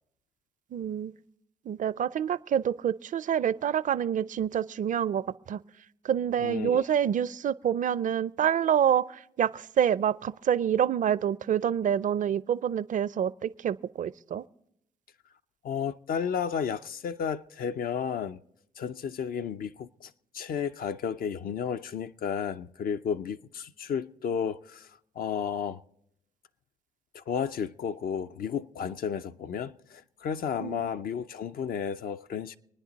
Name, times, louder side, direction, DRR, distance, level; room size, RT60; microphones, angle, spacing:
voice 1, 0.7-1.1 1.7-5.6 6.0-14.4 30.6-30.9, right 9 dB, 55° right, 0.4 m, -27 dB
voice 2, 6.4-6.8 15.6-18.4 18.8-24.9 25.2-25.8 27.1-32.6, left 7 dB, 65° left, 0.5 m, -32 dB
26.5 x 9.7 x 4.0 m
cardioid pair, 65°, 16 cm